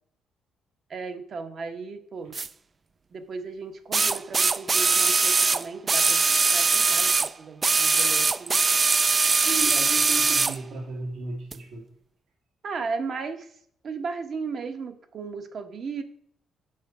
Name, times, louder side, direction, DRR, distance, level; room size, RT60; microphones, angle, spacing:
voice 1, 0.9-2.3 3.1-7.1 7.4-8.6 12.6-13.5 13.8-16.0, right 4 dB, 55° right, 6 dB, 1.1 m, -35 dB
sound 1, 2.3-2.5 3.9-7.3 7.6-10.6 11.5-11.6, right 4 dB, 35° right, 0.3 m, -21 dB
voice 2, 9.4-11.9, right 3 dB, 85° right, -2 dB, 2.3 m, -35 dB
6.2 x 5.9 x 4.8 m, 0.63 s
cardioid pair, 90°, 0 cm